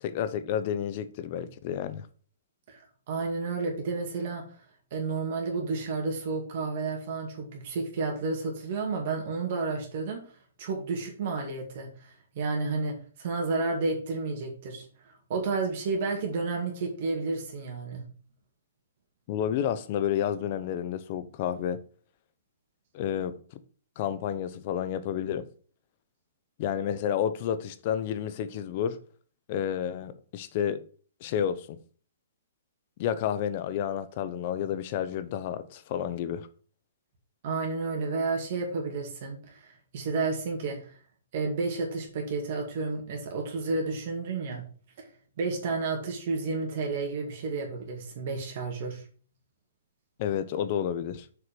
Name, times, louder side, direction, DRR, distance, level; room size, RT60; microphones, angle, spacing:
voice 1, 0.0-2.1 19.3-21.8 22.9-23.4 24.0-25.4 26.6-29.0 29.5-30.8 31.2-31.8 33.0-36.5 50.2-51.3, left 9 dB, 40° left, 0.8 m, -30 dB
voice 2, 3.1-4.4 4.9-18.0 37.4-40.9 41.3-44.6 45.0-45.1 45.4-49.0, right 3 dB, 50° right, 2.2 m, -31 dB
6.8 x 4.5 x 5.3 m
hypercardioid pair, 150°, 0 cm